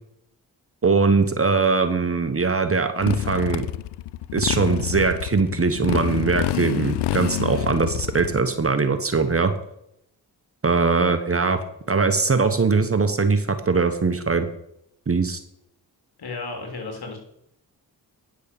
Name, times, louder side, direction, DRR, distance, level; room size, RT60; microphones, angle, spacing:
voice 1, 0.8-3.6 4.3-9.5 10.6-11.6 11.9-14.5 15.1-15.4, right 4 dB, 35° right, 8 dB, 1.2 m, -21 dB
Motorcycle, 3.0-8.4, left 14 dB, 80° left, 0.5 m, -27 dB
voice 2, 16.2-17.2, left 3 dB, 65° left, 3 dB, 3.4 m, -33 dB
9.9 x 6.6 x 7.0 m, 0.76 s
cardioid pair, 55°, 40 cm